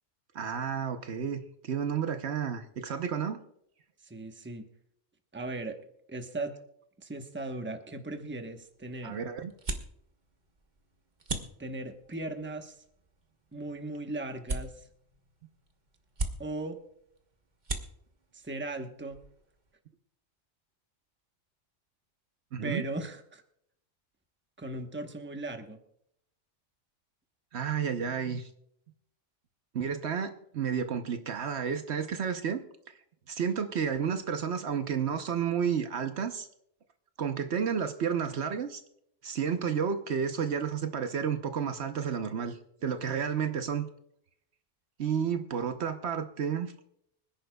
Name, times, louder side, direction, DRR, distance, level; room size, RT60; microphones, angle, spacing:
voice 1, 0.3-3.4 9.0-9.5 22.5-22.8 27.5-28.5 29.7-32.6 32.9-33.0 33.3-36.5 37.2-38.8 39.2-43.9 45.0-46.7, right 7 dB, 65° right, 8 dB, 1.1 m, -31 dB
voice 2, 4.0-4.7 5.3-5.8 6.1-6.5 7.0-9.2 11.6-12.8 13.5-14.9 16.4-16.8 18.3-19.2 22.6-23.4 24.6-25.8, right 2 dB, 10° right, 5 dB, 1.0 m, -37 dB
sound 1, 8.2-19.8, right 2 dB, 40° right, 1.3 m, -42 dB
25.5 x 10.5 x 2.3 m, 0.72 s
omnidirectional pair, 1.3 m